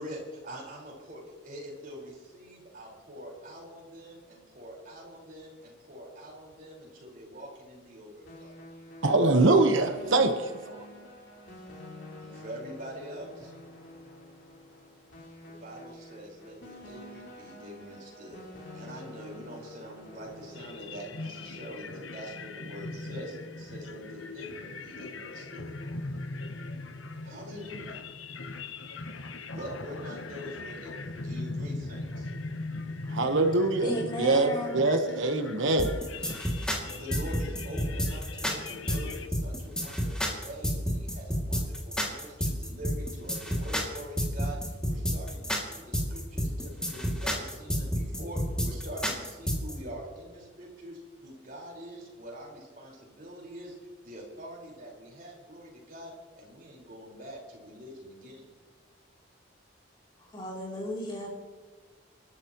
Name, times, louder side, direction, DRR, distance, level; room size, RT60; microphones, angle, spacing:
voice 1, 0.0-8.5 12.1-13.5 15.4-18.4 18.7-25.8 27.2-28.0 29.5-32.3 36.9-58.5, equal, 45° right, -3 dB, 4.9 m, -44 dB
sound 1, 8.2-21.8, left 1 dB, 65° left, 3.7 m, -48 dB
voice 2, 9.0-10.8 33.1-36.4, right 2 dB, 80° right, 6 dB, 1.2 m, -24 dB
sound 2, 20.5-39.3, left 3 dB, 85° left, 1.0 m, -40 dB
voice 3, 33.8-34.8 60.2-61.3, equal, 25° left, -2 dB, 3.3 m, -35 dB
sound 3, 35.8-49.7, equal, 5° left, 2.4 m, -30 dB
29.0 x 12.5 x 3.1 m, 1.4 s
head